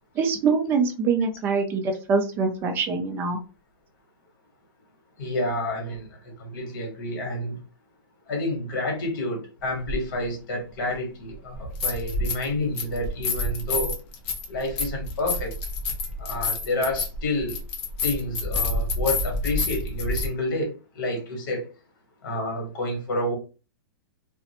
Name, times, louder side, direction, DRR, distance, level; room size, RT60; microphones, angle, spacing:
voice 1, 0.2-3.4, right 5 dB, 15° right, 4 dB, 0.3 m, -24 dB
voice 2, 5.2-7.6 8.3-14.0 14.5-15.5 16.2-17.6 18.0-21.6 22.2-23.3, left 1 dB, 55° left, 2 dB, 1.3 m, -29 dB
sound 1, 9.9-10.0 11.5-12.5 12.8-20.3, left 2 dB, 35° left, 0.6 m, -28 dB
2.4 x 2.1 x 2.8 m, 0.33 s
hypercardioid pair, 165°, 12 cm